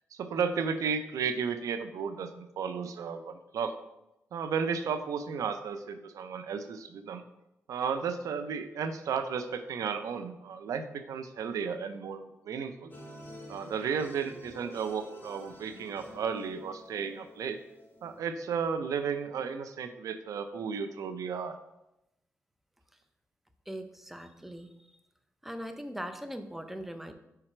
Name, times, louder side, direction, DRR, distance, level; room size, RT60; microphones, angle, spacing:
voice 1, 0.1-3.7 4.3-7.2 7.7-12.9 13.5-17.6 18.0-21.5, right 6 dB, 80° right, 9 dB, 0.5 m, -33 dB
Soft guitar, 12.9-18.2, left 1 dB, 35° left, 1.3 m, -49 dB
voice 2, 23.7-24.7 25.4-27.1, equal, 5° right, 8 dB, 0.6 m, -40 dB
4.8 x 4.5 x 4.4 m, 0.87 s
cardioid pair, 70°, 6 cm